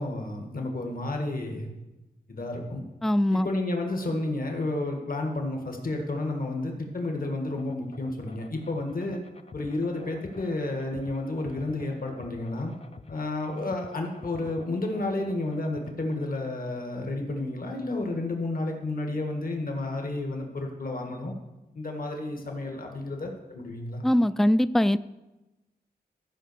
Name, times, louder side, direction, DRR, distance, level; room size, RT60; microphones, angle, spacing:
voice 1, 0.0-1.7 2.3-2.8 3.3-9.2 9.5-12.7 13.1-21.3 21.8-24.0, left 2 dB, 60° left, 2 dB, 1.8 m, -31 dB
voice 2, 3.0-3.5 24.0-25.0, left 1 dB, ahead, 15 dB, 0.3 m, -22 dB
sound 1, 7.6-16.5, left 3 dB, 35° left, 0.6 m, -48 dB
13.5 x 5.3 x 6.8 m, 1.0 s
wide cardioid pair, 80°, 17 cm